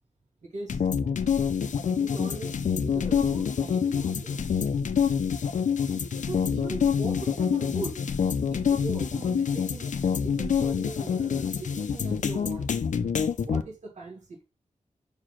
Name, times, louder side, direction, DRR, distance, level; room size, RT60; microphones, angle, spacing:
voice 1, 0.4-0.9 1.8-4.5 6.2-12.9 13.4-14.4, right 3 dB, 70° right, 2.8 m, -40 dB
sound 1, 0.7-13.6, left 7 dB, 85° left, 0.7 m, -26 dB
5.4 x 4.8 x 5.9 m
wide cardioid pair, 95°, 12 cm